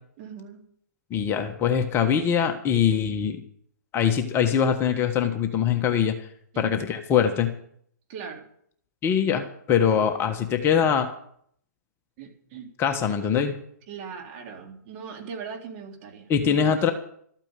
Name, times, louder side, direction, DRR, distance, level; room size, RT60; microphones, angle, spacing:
voice 1, 0.2-0.6 6.5-6.9 8.1-8.4 12.2-12.7 13.9-16.9, right 6 dB, 40° right, 1 dB, 3.8 m, -40 dB
voice 2, 1.1-3.4 3.9-6.1 6.6-7.5 9.0-11.1 12.8-13.5 16.3-16.9, left 8 dB, 25° left, 6 dB, 1.3 m, -23 dB
13.5 x 9.0 x 8.2 m, 0.65 s
hypercardioid pair, 125°, 10 cm